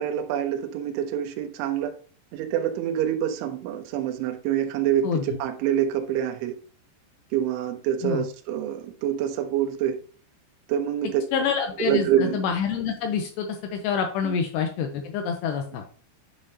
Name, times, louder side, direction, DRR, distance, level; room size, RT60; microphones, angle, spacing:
voice 1, 0.0-1.9 2.3-6.6 7.3-10.0 10.7-11.2 11.9-12.4 14.2-14.3, right 10 dB, 85° right, 3.2 m, -26 dB
voice 2, 11.3-15.9, left 6 dB, 80° left, 2.7 m, -27 dB
9.9 x 5.4 x 2.8 m
omnidirectional pair, 5.3 m